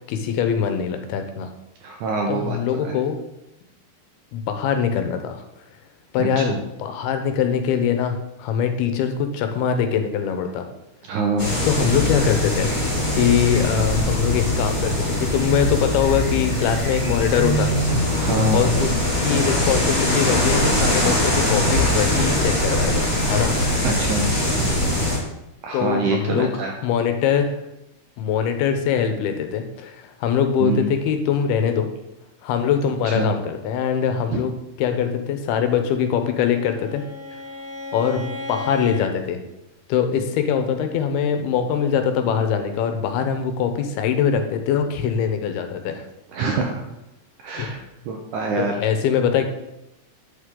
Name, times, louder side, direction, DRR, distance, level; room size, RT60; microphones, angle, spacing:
voice 1, 0.1-1.5 2.3-3.2 4.3-5.4 6.1-10.7 11.6-12.8 13.1-18.0 18.5-19.0 19.2-23.6 25.7-27.6 28.2-31.9 32.4-37.0 37.9-39.4 39.9-46.1 47.6-47.7 48.6-49.5, left 7 dB, 85° left, 7 dB, 2.7 m, -23 dB
voice 2, 1.8-2.9 6.2-6.6 11.1-11.6 18.2-18.6 23.8-24.7 25.6-26.7 30.6-30.9 33.1-33.3 34.3-34.4 46.3-46.8 47.4-47.8 48.1-48.7, right 3 dB, 75° right, 2 dB, 1.9 m, -25 dB
sound 1, 11.4-25.2, left 1 dB, 10° left, 1.4 m, -21 dB
Bowed string instrument, 35.9-39.1, left 2 dB, 15° right, 2.4 m, -35 dB
9.0 x 6.5 x 3.7 m, 0.90 s
omnidirectional pair, 4.4 m